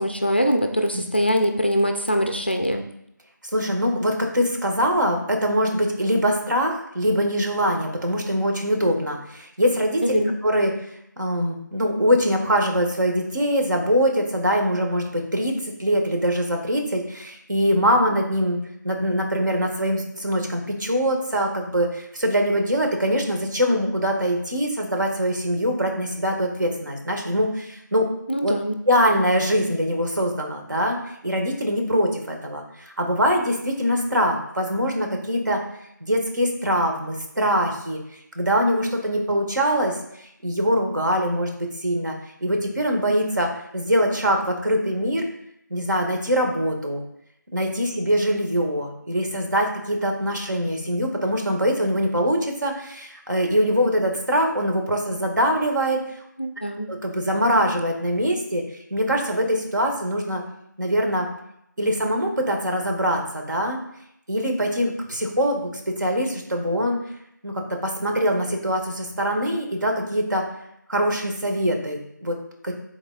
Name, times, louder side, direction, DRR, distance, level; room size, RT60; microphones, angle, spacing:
voice 1, 0.0-2.8 10.0-10.3 28.3-28.8 56.4-56.9, equal, 30° left, 5 dB, 0.4 m, -23 dB
voice 2, 3.5-10.8 11.2-15.5 15.8-18.6 18.8-28.1 28.4-28.5 28.9-35.6 36.0-38.0 38.3-42.1 42.4-45.3 45.7-47.0 47.5-56.0 56.9-58.6 58.9-60.4 60.8-61.3 61.8-63.8 64.3-67.0 67.4-70.5 70.9-72.7, equal, 70° right, 2 dB, 1.5 m, -23 dB
10.5 x 4.0 x 2.3 m, 0.77 s
figure-of-eight pair, 180°, 11 cm